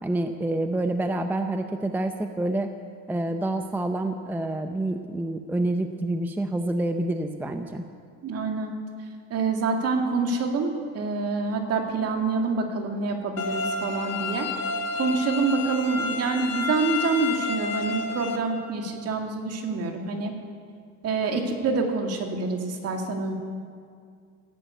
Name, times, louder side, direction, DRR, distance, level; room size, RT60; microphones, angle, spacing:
voice 1, 0.0-2.7 3.1-7.8, right 1 dB, 5° right, 6 dB, 0.6 m, -27 dB
voice 2, 8.2-8.7 9.3-14.5 15.0-20.3 21.0-23.4, right 4 dB, 50° right, 3 dB, 2.1 m, -26 dB
sound 1, 13.4-18.4, left 3 dB, 55° left, 1.7 m, -30 dB
14.5 x 10.5 x 8.2 m, 2.2 s
cardioid pair, 135°, 32 cm